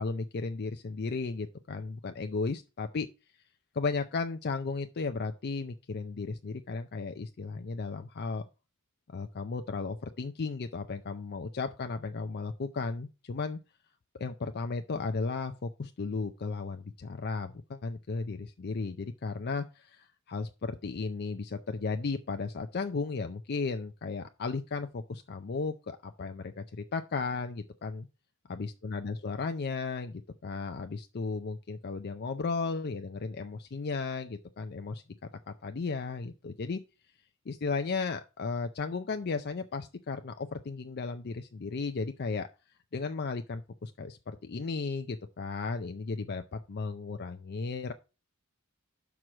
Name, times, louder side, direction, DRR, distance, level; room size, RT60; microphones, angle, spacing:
voice 1, 0.0-3.1 3.7-8.4 9.1-13.6 14.1-26.6 26.9-28.1 28.5-35.0 35.6-36.8 37.5-42.5 42.9-47.9, left 4 dB, 50° left, 0.5 m, -35 dB
6.1 x 4.6 x 6.1 m
head